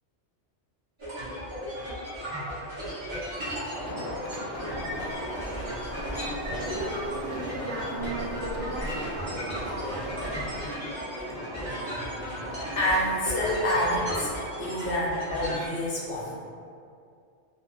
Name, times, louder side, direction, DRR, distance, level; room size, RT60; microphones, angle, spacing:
sound 1, 1.0-15.7, equal, 25° right, 1.2 m, -35 dB
sound 2, 3.7-13.6, left 1 dB, 35° left, 0.4 m, -41 dB
Waves surf, 4.7-10.7, right 1 dB, 40° right, 0.5 m, -39 dB
voice 1, 6.5-9.1, right 2 dB, 65° right, -4 dB, 0.8 m, -35 dB
voice 2, 12.7-14.3 14.6-16.3, left 1 dB, 60° left, -4 dB, 0.7 m, -27 dB
4.1 x 2.6 x 2.3 m, 2.3 s
omnidirectional pair, 1.2 m